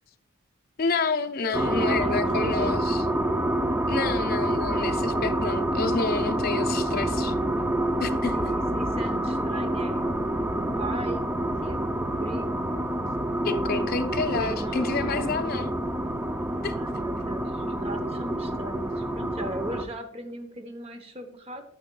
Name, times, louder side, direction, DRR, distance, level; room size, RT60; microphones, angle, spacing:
voice 1, 0.8-3.0 3.9-7.3 8.0-8.4 13.4-15.7 16.6-16.8, left 4 dB, 45° left, 0.5 m, -29 dB
voice 2, 1.4-2.8 4.0-4.1 8.3-12.8 13.5-15.4 16.7-21.6, right 1 dB, 30° right, 0.8 m, -39 dB
sound 1, 1.5-19.9, right 1 dB, 10° right, 0.3 m, -27 dB
8.5 x 8.2 x 2.2 m
head